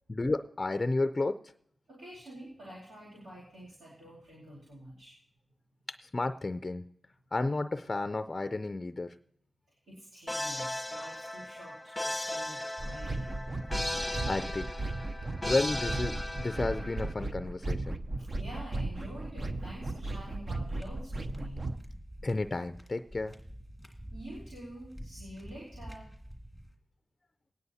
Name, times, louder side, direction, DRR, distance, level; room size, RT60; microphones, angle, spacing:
voice 1, 0.1-1.4 6.0-6.8 7.3-9.1 14.3-14.6 15.4-18.0 22.2-23.3, left 2 dB, 35° left, 11 dB, 0.4 m, -32 dB
voice 2, 1.9-5.2 9.7-13.6 18.2-21.7 24.1-26.1, right 1 dB, 90° right, -9 dB, 2.8 m, -47 dB
sound 1, 10.3-17.1, left 1 dB, 10° left, 1.0 m, -37 dB
sound 2, 12.8-21.8, right 2 dB, 45° right, 0.7 m, -36 dB
sound 3, 20.6-26.7, equal, 5° right, 2.1 m, -48 dB
20.5 x 9.3 x 2.8 m, 0.68 s
cardioid pair, 50°, 0 cm